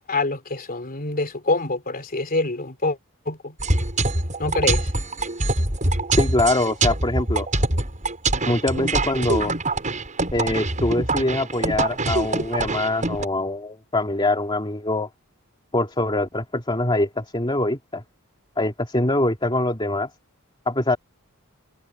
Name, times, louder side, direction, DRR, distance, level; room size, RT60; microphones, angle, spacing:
voice 1, 0.1-3.0 3.3-3.6 4.4-4.9, left 2 dB, 40° left, 3.5 m, -25 dB
sound 1, 3.6-13.3, right 2 dB, 35° right, 7.9 m, -24 dB
voice 2, 6.2-7.5 8.4-9.5 10.3-15.1 15.7-18.0 18.6-20.1 20.7-21.0, left 2 dB, 20° left, 2.5 m, -23 dB
head